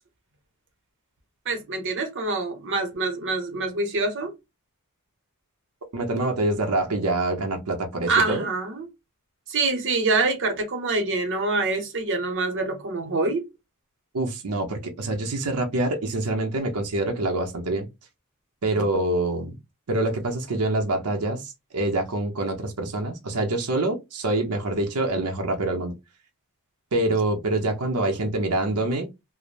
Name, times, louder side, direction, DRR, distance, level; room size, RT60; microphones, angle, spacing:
voice 1, 1.5-4.3 8.1-8.9 9.5-13.5, right 3 dB, 55° right, 0.8 m, -25 dB
voice 2, 5.9-8.4 14.1-17.9 18.6-19.6 19.9-25.9 26.9-29.1, right 2 dB, 90° right, 0.7 m, -25 dB
3.2 x 2.1 x 2.4 m
head